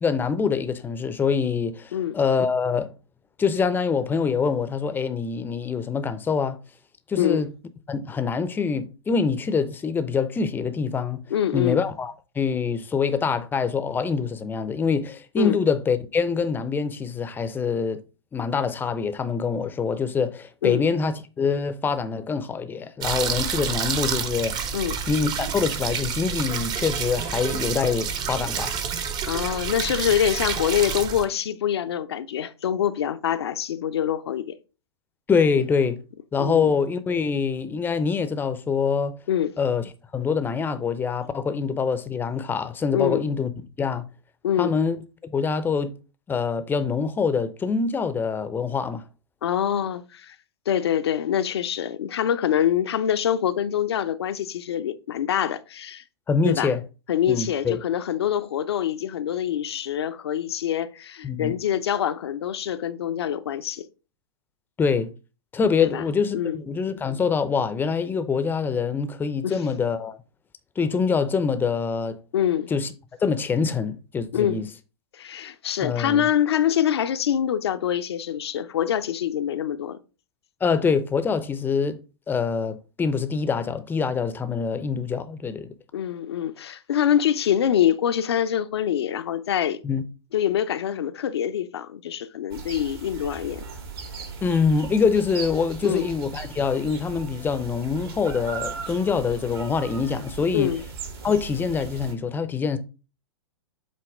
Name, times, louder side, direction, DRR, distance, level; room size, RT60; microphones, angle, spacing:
voice 1, 0.0-2.9 3.4-6.6 7.1-7.5 7.9-11.2 11.5-18.0 18.3-24.7 25.1-28.7 35.3-36.0 36.3-39.2 39.6-39.8 40.1-43.5 43.8-44.0 44.6-46.0 46.3-49.0 56.3-56.8 57.3-57.8 61.2-61.5 64.8-65.1 65.5-70.2 70.8-72.2 72.7-72.9 73.2-74.7 75.8-76.3 80.6-82.0 82.3-85.7 89.8-90.0 94.4-100.7 101.2-102.8, left 5 dB, 15° left, 0.6 m, -25 dB
voice 2, 11.3-11.8 15.4-15.6 20.6-20.8 24.7-25.0 29.3-34.6 36.4-36.7 39.3-39.5 42.9-43.3 44.4-44.8 49.4-50.4 50.7-56.0 56.4-56.7 57.1-63.9 65.8-66.0 66.3-66.6 69.4-69.7 72.3-72.7 74.3-74.6 75.1-80.0 85.9-89.8 90.3-93.6 95.8-96.1 100.5-100.8, left 10 dB, 70° left, 0.6 m, -25 dB
sound 1, 23.0-31.2, right 7 dB, 30° right, 0.9 m, -29 dB
sound 2, 92.5-102.1, right 5 dB, 60° right, 1.7 m, -38 dB
7.7 x 2.9 x 4.8 m
figure-of-eight pair, 105°, 14 cm